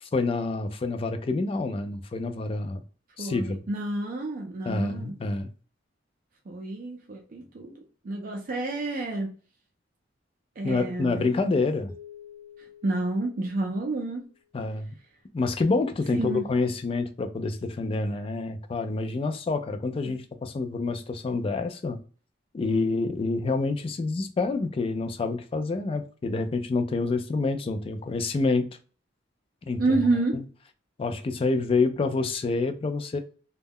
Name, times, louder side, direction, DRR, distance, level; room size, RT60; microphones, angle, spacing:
voice 1, 0.0-2.8 3.2-3.6 4.6-5.5 10.6-11.9 14.5-15.0 15.3-22.0 22.5-28.7 29.7-30.0 30.3-30.4 31.0-33.2, left 3 dB, 30° left, 0.3 m, -27 dB
voice 2, 3.2-5.1 6.5-7.7 8.0-9.3 10.6-11.3 12.8-14.2 16.1-16.5 20.0-20.1 29.8-30.4, right 2 dB, 50° right, 0.4 m, -29 dB
sound 1, 11.9-14.5, left 8 dB, 15° right, 0.9 m, -50 dB
2.2 x 2.0 x 3.4 m
head